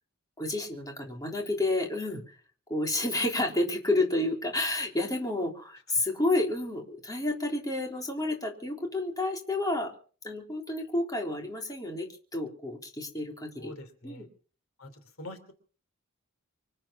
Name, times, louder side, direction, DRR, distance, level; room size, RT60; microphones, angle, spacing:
voice 1, 0.4-2.4 2.7-9.9 10.2-13.7 14.0-14.3, left 2 dB, 15° left, 1 dB, 3.7 m, -30 dB
voice 2, 13.6-14.3 14.8-14.9 15.2-15.5, left 1 dB, 70° left, 8 dB, 3.1 m, -44 dB
25.5 x 8.9 x 5.9 m, 0.42 s
head